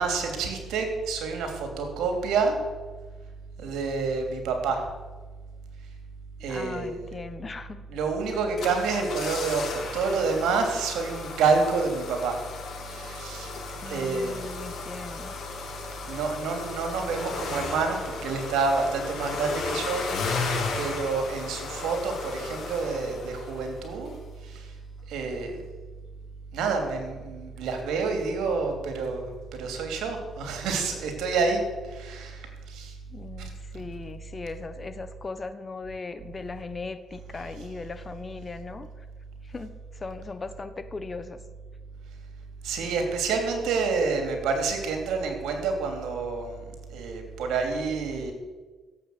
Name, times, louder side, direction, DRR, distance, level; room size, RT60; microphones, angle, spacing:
voice 1, 0.0-2.6 3.6-4.8 6.4-7.1 7.9-12.4 12.9-13.5 13.9-14.5 16.1-20.4 20.8-24.2 24.4-24.7 25.1-25.5 26.5-32.9 33.4-33.5 42.6-46.6 46.9-48.3, right 4 dB, 85° right, 4 dB, 3.1 m, -28 dB
voice 2, 6.4-7.8 13.8-15.6 33.1-38.9 39.4-41.4, left 4 dB, 30° left, 11 dB, 1.2 m, -38 dB
sound 1, 8.3-23.8 24.1-24.2, left 4 dB, 60° left, 4.7 m, -35 dB
16.0 x 8.1 x 8.0 m, 1.3 s
cardioid pair, 90°, 0 cm